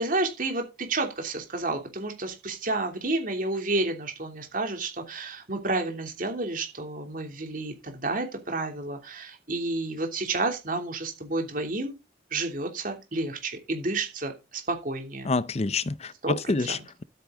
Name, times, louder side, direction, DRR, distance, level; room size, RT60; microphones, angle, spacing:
voice 1, 0.0-12.0 12.3-15.3 16.2-16.8, right 2 dB, 45° right, 3.0 m, -30 dB
voice 2, 15.3-17.0, left 3 dB, 35° left, 0.6 m, -27 dB
12.5 x 8.5 x 3.8 m
head